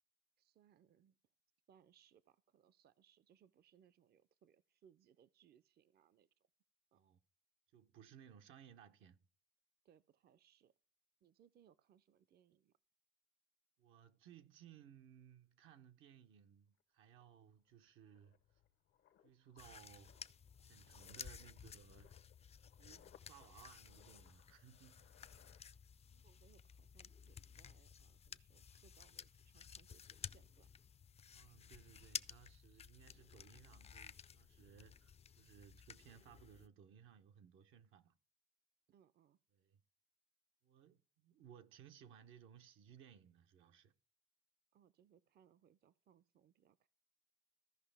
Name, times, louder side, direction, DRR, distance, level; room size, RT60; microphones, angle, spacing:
voice 1, 0.4-1.2 1.7-6.5 6.9-7.0 9.8-10.7 11.2-12.8 21.4-21.5 25.3-25.5 26.1-30.7 38.9-39.4 44.7-46.9, right 9 dB, 55° right, 0.5 m, -71 dB
voice 2, 7.7-9.3 13.8-18.4 19.2-20.2 20.6-22.1 22.8-25.1 31.3-38.2 39.5-39.8 40.6-43.9, right 9 dB, 85° right, 0.8 m, -62 dB
sound 1, 16.8-16.9 17.2-26.3 26.5-26.8, left 9 dB, 80° left, 0.8 m, -70 dB
sound 2, 19.6-36.7, left 7 dB, 30° left, 0.4 m, -54 dB
15.0 x 5.4 x 3.4 m
cardioid pair, 90°, 20 cm